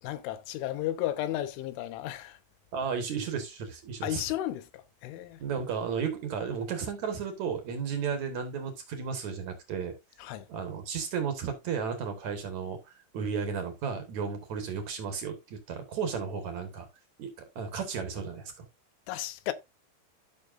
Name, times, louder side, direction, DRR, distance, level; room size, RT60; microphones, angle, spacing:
voice 1, 0.0-2.4 4.0-5.4 10.2-10.5 19.1-19.5, left 13 dB, 80° left, 3.4 m, -34 dB
voice 2, 2.7-4.2 5.4-9.9 10.5-16.9 17.2-18.5, right 6 dB, 60° right, 2.0 m, -34 dB
14.0 x 6.1 x 2.6 m
omnidirectional pair, 5.5 m